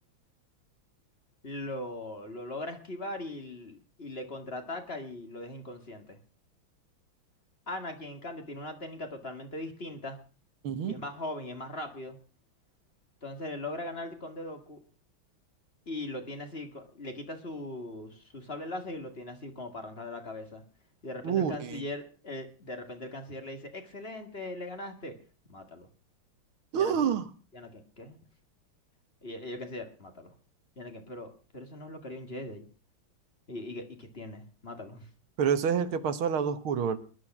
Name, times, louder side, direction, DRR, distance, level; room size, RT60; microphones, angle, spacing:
voice 1, 1.4-6.2 7.7-10.2 10.9-12.2 13.2-14.8 15.9-20.6 21.0-25.1 25.5-25.9 26.7-26.9 27.5-28.2 29.2-30.3 30.8-32.7 33.5-35.1, left 1 dB, 30° left, 6 dB, 2.0 m, -40 dB
voice 2, 10.6-10.9 21.2-21.8 26.7-27.3 35.4-37.0, right 7 dB, 85° right, 11 dB, 2.1 m, -27 dB
20.0 x 11.0 x 6.0 m, 0.38 s
omnidirectional pair, 2.2 m